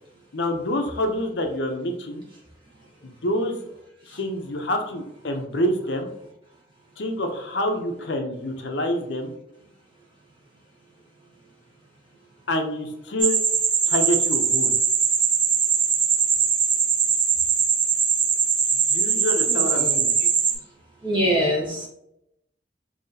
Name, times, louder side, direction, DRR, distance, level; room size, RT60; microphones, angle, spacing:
voice 1, 0.3-2.2 3.0-3.7 4.1-6.1 7.0-9.3 12.5-13.4 13.9-14.7 18.9-20.1, left 1 dB, 70° left, 4 dB, 0.7 m, -27 dB
sound 1, 13.2-20.5, right 6 dB, 50° right, 1.2 m, -21 dB
voice 2, 19.5-20.3 21.0-21.9, equal, 30° right, -4 dB, 1.5 m, -25 dB
5.6 x 2.8 x 2.7 m, 0.80 s
head